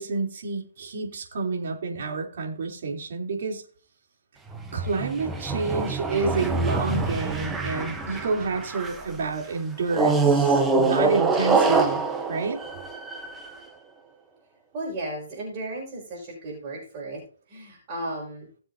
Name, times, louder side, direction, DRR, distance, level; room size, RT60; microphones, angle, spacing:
voice 1, 0.0-3.6 4.7-12.6, right 4 dB, 55° right, 0 dB, 3.4 m, -29 dB
sound 1, 4.5-9.1 9.9-13.5, right 4 dB, 10° right, 1.0 m, -25 dB
voice 2, 14.7-17.2 17.5-18.5, right 1 dB, 30° right, -6 dB, 5.4 m, -34 dB
20.5 x 7.2 x 2.8 m, 0.42 s
hypercardioid pair, 160°, 0 cm